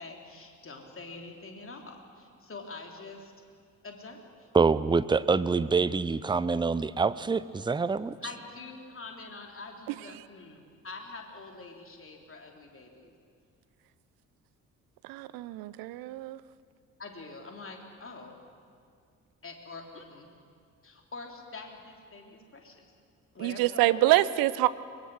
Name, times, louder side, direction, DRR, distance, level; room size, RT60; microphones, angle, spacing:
voice 1, 0.0-3.3 3.8-4.5 8.2-13.1 17.0-18.4 19.4-20.3 20.8-22.9 23.3-24.2, left 3 dB, 30° left, 2 dB, 3.3 m, -45 dB
voice 2, 4.5-8.2, right 4 dB, 10° right, 16 dB, 0.6 m, -25 dB
voice 3, 15.1-16.4 23.4-24.7, right 16 dB, 55° right, 16 dB, 0.7 m, -25 dB
23.0 x 21.5 x 6.3 m, 2.2 s
figure-of-eight pair, 40°, 42 cm